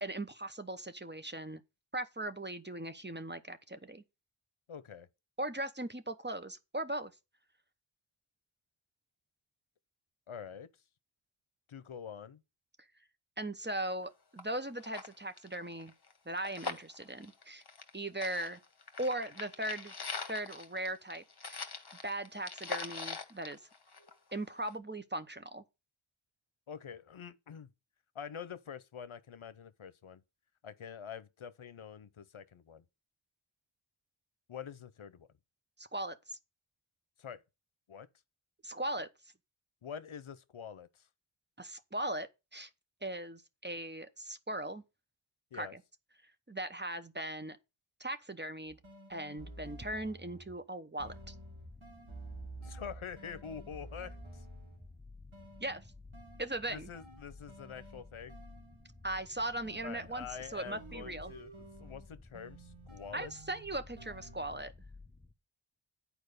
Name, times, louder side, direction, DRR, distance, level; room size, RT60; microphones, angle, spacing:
voice 1, 0.0-1.6 1.9-4.0 5.4-7.1 13.4-15.9 16.3-17.6 17.9-18.6 19.0-19.9 20.3-21.6 22.0-23.6 24.3-25.6 35.8-36.4 38.6-39.1 41.6-42.7 43.0-44.8 45.5-45.7 46.5-47.6 48.0-48.8 49.1-51.3 55.6-55.8 56.4-56.9 59.0-60.3 60.5-61.3 63.1-64.7, right 1 dB, 20° right, 0.9 m, -39 dB
voice 2, 4.7-5.1 10.3-10.7 11.7-12.4 26.7-27.7 28.1-30.2 30.6-32.8 34.5-35.3 37.2-37.4 37.9-38.1 39.8-41.1 45.5-45.8 52.6-54.4 56.7-58.4 59.8-63.3, left 7 dB, 75° left, 0.7 m, -46 dB
sound 1, 14.0-14.1 14.4-14.5 14.8-17.9 18.2-24.3 24.7-24.8, left 4 dB, 50° left, 1.2 m, -43 dB
sound 2, 48.7-50.6 51.0-55.0 55.3-59.0 59.6-64.6, right 2 dB, 70° right, 3.1 m, -52 dB
sound 3, 51.0-65.3, left 3 dB, 10° left, 1.0 m, -55 dB
8.9 x 4.7 x 6.6 m
wide cardioid pair, 45°, 50 cm